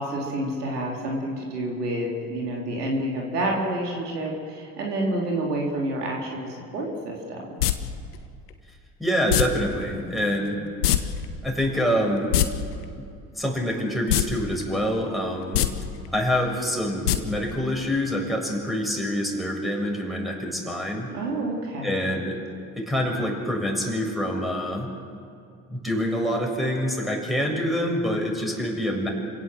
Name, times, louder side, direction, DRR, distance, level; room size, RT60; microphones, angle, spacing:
voice 1, 0.0-7.6 10.1-10.7 21.1-22.3, right 1 dB, 80° right, -1 dB, 3.7 m, -29 dB
sound 1, 7.6-7.7 9.3-9.4 10.8-11.0 11.2-11.3 12.2-12.5 14.1-14.3 14.6-14.7 15.4-15.7 17.1-17.2 17.5-17.6, left 13 dB, 80° left, 1.4 m, -20 dB
voice 2, 9.0-10.6 11.4-12.3 12.9-13.0 13.4-15.7 16.1-21.1 21.8-22.4 22.8-24.9 25.7-29.1, equal, ahead, 0 dB, 7.2 m, -26 dB
29.0 x 17.0 x 7.8 m, 2.4 s
figure-of-eight pair, 60°, 46 cm